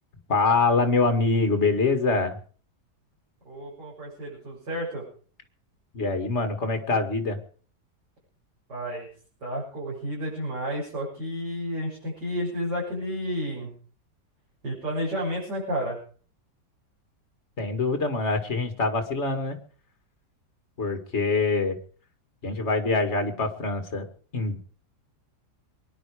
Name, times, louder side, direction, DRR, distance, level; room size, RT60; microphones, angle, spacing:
voice 1, 0.3-2.4 5.9-7.4 17.6-19.6 20.8-21.8 22.4-24.1 24.3-24.6, left 3 dB, 40° left, 7 dB, 2.3 m, -24 dB
voice 2, 3.4-5.0 8.7-9.1 9.4-13.7 14.6-16.0, equal, 80° right, -6 dB, 7.8 m, -31 dB
23.5 x 11.0 x 5.0 m, 0.43 s
omnidirectional pair, 1.8 m